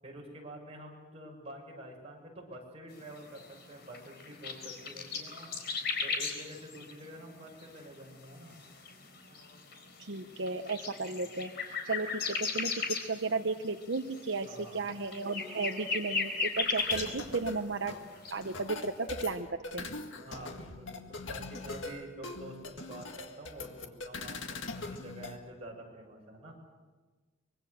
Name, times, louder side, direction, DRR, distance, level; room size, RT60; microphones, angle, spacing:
voice 1, 0.0-5.6 6.0-8.5 14.4-14.9 20.2-26.6, right 1 dB, 30° right, 0 dB, 6.5 m, -48 dB
sound 1, 3.0-17.6 17.9-18.8, left 5 dB, 60° left, 4.1 m, -37 dB
voice 2, 10.0-11.5 11.8-17.9 18.3-19.5 19.7-19.9, right 3 dB, 65° right, 6 dB, 0.9 m, -34 dB
sound 2, 16.8-25.4, left 3 dB, 80° left, 2.0 m, -42 dB
25.0 x 23.0 x 6.6 m, 1.3 s
head